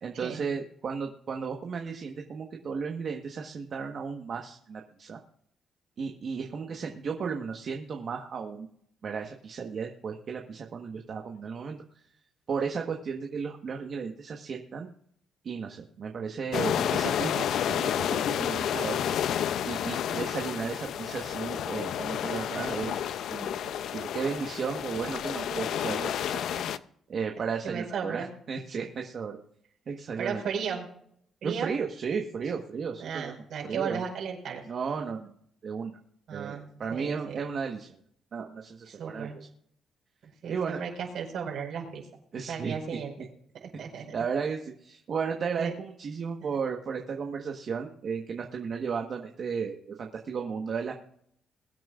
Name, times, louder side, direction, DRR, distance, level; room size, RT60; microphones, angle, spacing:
voice 1, 0.0-5.2 6.0-8.7 9.0-11.8 12.5-14.9 15.4-19.0 19.7-23.5 23.9-26.4 27.1-29.4 29.9-30.4 31.4-33.4 33.6-34.0 34.6-35.3 35.6-35.9 36.3-37.9 38.3-39.5 40.5-40.8 42.3-43.0 44.1-50.9, right 6 dB, 55° right, 3 dB, 1.3 m, -34 dB
sound 1, 16.5-26.8, left 9 dB, 75° left, 0.5 m, -30 dB
voice 2, 27.6-28.3 30.2-30.9 31.4-31.7 33.0-34.6 36.3-37.4 38.9-39.4 40.2-42.1 42.5-43.1 43.5-44.1 45.6-45.7, right 7 dB, 70° right, 0 dB, 5.0 m, -35 dB
22.0 x 9.3 x 2.5 m, 0.66 s
cardioid pair, 90°, 0 cm